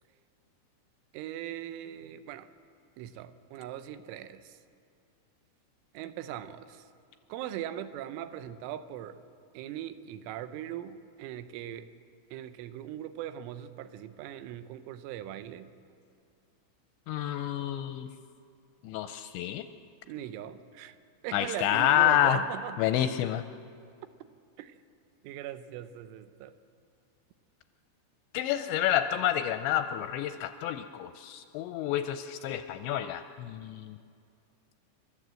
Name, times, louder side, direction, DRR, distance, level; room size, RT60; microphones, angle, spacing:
voice 1, 1.1-2.5 3.0-4.6 5.9-6.8 7.3-9.2 9.5-11.9 12.3-15.7 20.1-21.0 21.2-22.9 24.6-24.8 25.2-26.5, right 11 dB, 80° right, 11 dB, 3.2 m, -40 dB
voice 2, 17.1-18.1 18.8-19.7 21.3-22.4 22.8-23.4 28.3-34.0, left 11 dB, 85° left, 9 dB, 2.6 m, -28 dB
29.5 x 12.5 x 7.6 m, 2.3 s
omnidirectional pair, 5.6 m